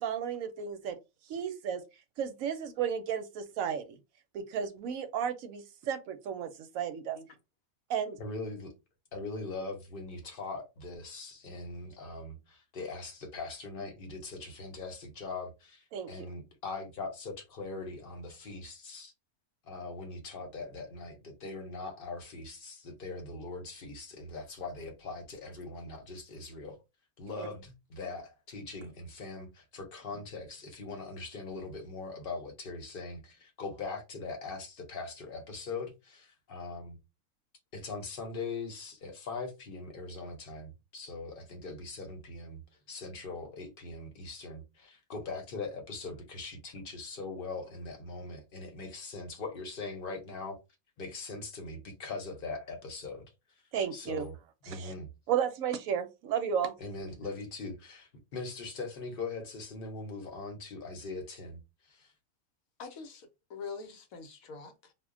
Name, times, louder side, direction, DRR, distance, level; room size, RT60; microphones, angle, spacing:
voice 1, 0.0-1.0 1.3-1.8 2.2-3.9 4.3-7.2 7.9-8.2 15.9-16.3 27.4-27.5 53.7-54.3 54.7-54.9 55.3-56.7, right 8 dB, 70° right, 1.0 m, -33 dB
voice 2, 8.2-8.7 9.1-19.1 19.6-26.8 27.2-37.0 37.7-42.6 42.9-50.6 51.0-53.3 53.9-54.3 54.6-55.1 56.8-62.1, left 3 dB, 45° left, 0.9 m, -41 dB
voice 3, 62.8-64.9, left 4 dB, 75° left, 1.0 m, -44 dB
2.4 x 2.1 x 3.6 m
omnidirectional pair, 1.5 m